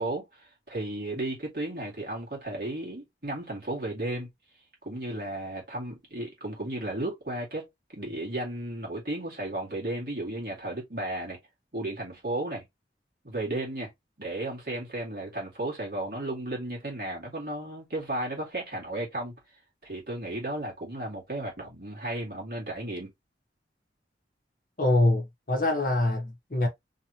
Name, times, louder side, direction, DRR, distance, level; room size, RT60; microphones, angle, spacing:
voice 1, 0.0-4.3 4.8-11.4 11.7-12.6 13.2-13.9 14.2-19.3 19.8-23.1, right 1 dB, 60° right, 2.1 m, -34 dB
voice 2, 24.8-26.7, left 2 dB, 50° left, 1.1 m, -24 dB
3.8 x 3.0 x 2.9 m
head